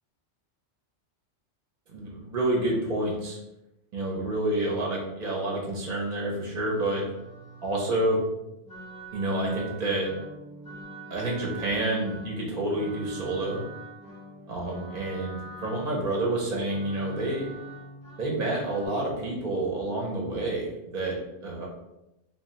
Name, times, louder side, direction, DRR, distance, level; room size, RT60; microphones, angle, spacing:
voice 1, 1.9-3.4 3.9-7.0 7.6-8.2 9.1-10.1 11.1-13.6 14.5-17.5 18.2-21.2 21.4-21.7, right 1 dB, 50° right, -1 dB, 0.6 m, -28 dB
sound 1, 6.3-18.9, right 3 dB, 5° right, 0.7 m, -45 dB
2.2 x 2.1 x 3.8 m, 0.92 s
omnidirectional pair, 1.2 m